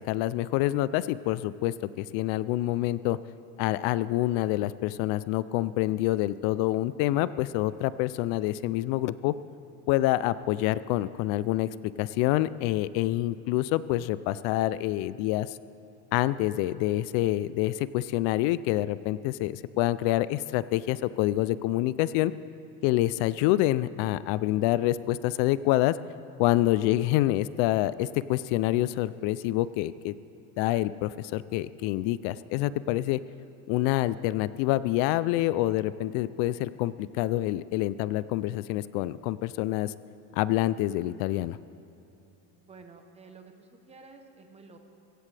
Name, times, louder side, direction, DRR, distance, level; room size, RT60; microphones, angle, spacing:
voice 1, 0.0-3.2 3.6-9.3 9.9-15.6 16.1-22.3 22.8-26.0 26.4-30.1 30.6-33.2 33.7-39.9 40.4-41.6, left 15 dB, 70° left, 17 dB, 0.5 m, -27 dB
voice 2, 42.6-44.8, right 4 dB, 15° right, 5 dB, 0.8 m, -51 dB
23.0 x 16.0 x 3.3 m, 2.8 s
cardioid pair, 175°, 40 cm